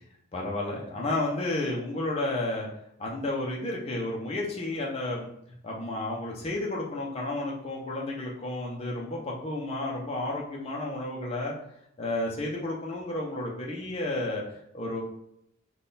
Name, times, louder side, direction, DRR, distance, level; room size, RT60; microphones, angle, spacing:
voice 1, 0.3-2.7 3.0-5.3 5.6-11.5 12.0-15.0, left 2 dB, 30° left, -2 dB, 0.5 m, -32 dB
3.6 x 2.3 x 3.9 m, 0.79 s
head